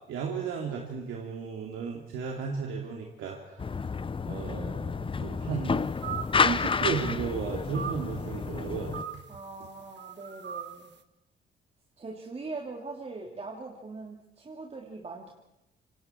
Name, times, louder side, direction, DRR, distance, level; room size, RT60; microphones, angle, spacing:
voice 1, 0.1-3.7 4.3-5.8 6.3-9.2, right 6 dB, 85° right, 0 dB, 2.9 m, -34 dB
sound 1, 3.6-9.0, left 5 dB, 25° left, 0.7 m, -30 dB
sound 2, 6.0-6.6 6.8-7.3 7.7-8.1 8.9-9.4 10.0-10.8, right 8 dB, 60° right, 1.6 m, -39 dB
voice 2, 9.3-10.9 12.0-15.3, right 3 dB, 30° right, 0 dB, 3.1 m, -41 dB
27.0 x 25.0 x 4.6 m, 0.92 s
cardioid pair, 90°, 20 cm